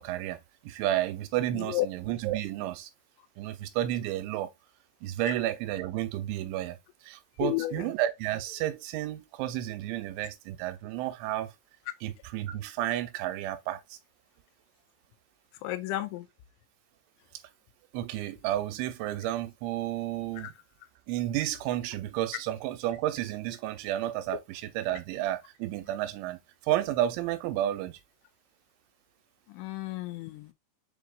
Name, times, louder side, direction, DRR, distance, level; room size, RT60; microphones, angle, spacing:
voice 1, 0.0-2.9 3.4-4.5 5.0-6.8 7.0-11.5 12.0-14.0 17.9-20.5 21.1-26.4 26.6-28.0, right 13 dB, 85° right, 2.9 m, -31 dB
voice 2, 7.4-7.8 15.6-16.2 20.4-20.5 29.5-30.5, left 16 dB, 85° left, 2.8 m, -32 dB
7.0 x 2.8 x 2.4 m
omnidirectional pair, 5.3 m